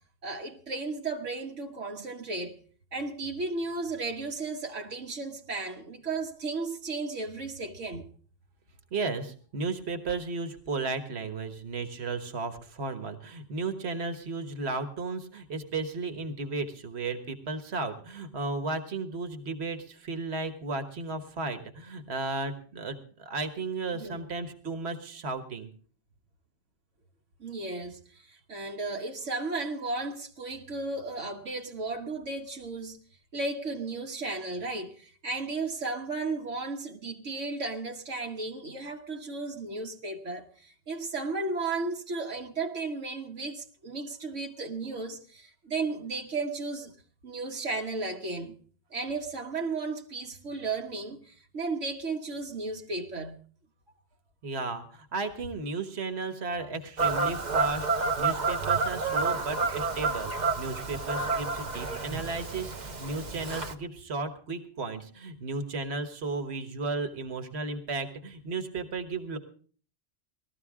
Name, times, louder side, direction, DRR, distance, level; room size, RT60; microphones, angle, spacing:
voice 1, 0.2-2.6 2.9-8.1 23.9-24.2 27.4-33.0 33.3-46.9 47.2-48.6 48.9-53.4, right 3 dB, 75° right, 1.6 m, -34 dB
voice 2, 8.9-25.7 54.4-69.4, right 3 dB, 60° right, 1.6 m, -34 dB
Fowl / Bird vocalization bird call bird song, 57.0-63.7, right 4 dB, 40° right, 1.0 m, -29 dB
19.5 x 14.0 x 3.6 m
omnidirectional pair, 1.3 m